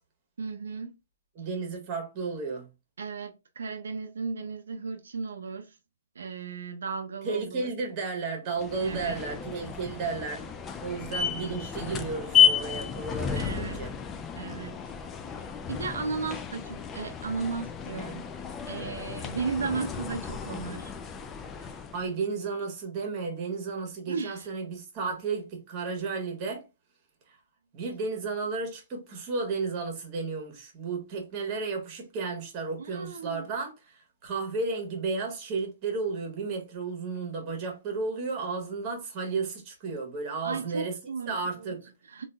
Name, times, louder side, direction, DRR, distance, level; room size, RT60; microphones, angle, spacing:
voice 1, 0.4-0.9 3.0-5.8 6.1-7.7 8.7-9.2 13.3-13.8 14.4-14.8 15.3-18.3 18.6-20.9 24.1-24.5 32.8-33.5 40.4-42.2, right 4 dB, 85° right, 0.5 m, -35 dB
voice 2, 1.4-2.7 7.2-13.9 21.6-26.6 27.7-41.0 41.2-41.8, right 4 dB, 30° right, 1.1 m, -33 dB
sound 1, 8.6-22.1, left 8 dB, 15° left, 0.3 m, -31 dB
3.8 x 2.5 x 2.2 m
hypercardioid pair, 155°, 0 cm